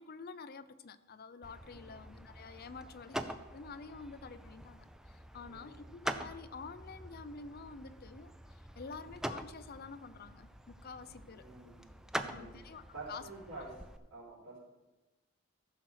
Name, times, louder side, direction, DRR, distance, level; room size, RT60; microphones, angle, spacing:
voice 1, 0.0-11.5 12.2-13.3 13.6-13.7, left 4 dB, 45° left, 12 dB, 0.5 m, -49 dB
sound 1, 1.4-14.0, right 1 dB, 5° right, 0.4 m, -45 dB
voice 2, 1.6-2.0 5.4-5.9 9.0-9.1 11.4-12.6 12.9-13.7 14.1-14.6, right 3 dB, 90° right, -11 dB, 3.9 m, -49 dB
14.5 x 6.2 x 4.8 m, 1.1 s
head